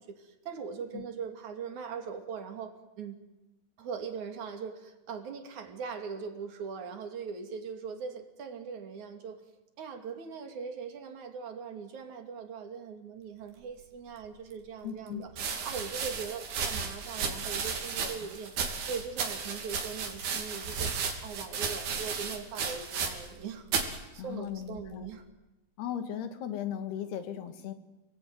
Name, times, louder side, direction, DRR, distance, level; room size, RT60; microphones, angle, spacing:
voice 1, 0.0-3.2 3.8-9.4 9.8-15.3 15.6-18.5 18.8-20.9 21.2-23.7 24.1-25.2, right 6 dB, 50° right, 5 dB, 3.7 m, -40 dB
sound 1, 14.2-14.3 15.3-23.4 23.7-24.0 24.7-25.2, right 5 dB, 75° right, 4.9 m, -34 dB
voice 2, 14.8-15.2 18.0-18.3 24.2-25.1 25.8-27.7, left 9 dB, 85° left, 9 dB, 3.9 m, -37 dB
29.5 x 20.5 x 9.6 m, 1.0 s
omnidirectional pair, 4.5 m